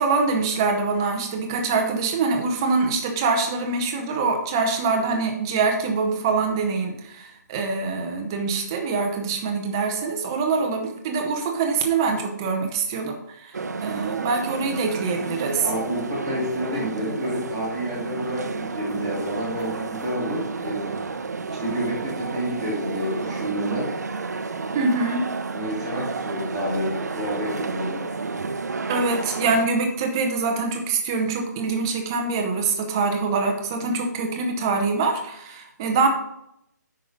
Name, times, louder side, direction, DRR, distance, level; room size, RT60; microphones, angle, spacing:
voice 1, 0.0-15.7 24.7-25.3 28.9-36.1, right 4 dB, 10° right, 3 dB, 0.7 m, -24 dB
sound 1, 13.5-29.7, right 4 dB, 65° right, 0.8 m, -31 dB
voice 2, 15.6-21.0 21.6-23.9 25.5-28.1, equal, 5° left, -9 dB, 1.6 m, -29 dB
9.1 x 5.6 x 5.1 m, 0.77 s
hypercardioid pair, 180°, 10 cm